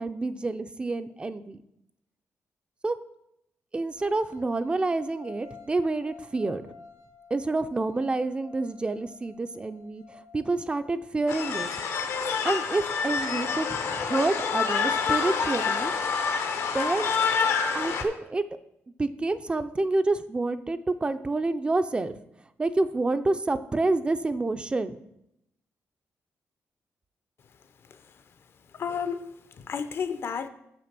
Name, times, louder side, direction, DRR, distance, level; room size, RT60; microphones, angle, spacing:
voice 1, 0.0-1.6 2.8-3.0 3.7-6.7 7.3-10.0 10.3-11.7 12.4-15.9 16.7-17.1 17.7-18.4 19.0-22.2 22.6-25.0, right 2 dB, 20° right, 0.4 m, -28 dB
sound 1, 3.9-11.0, left 5 dB, 90° right, 1.4 m, -51 dB
sound 2, 11.3-18.0, left 6 dB, 80° left, 1.0 m, -27 dB
voice 2, 28.7-30.5, left 6 dB, 60° left, 0.6 m, -32 dB
7.1 x 6.0 x 5.9 m
cardioid pair, 130°, 5 cm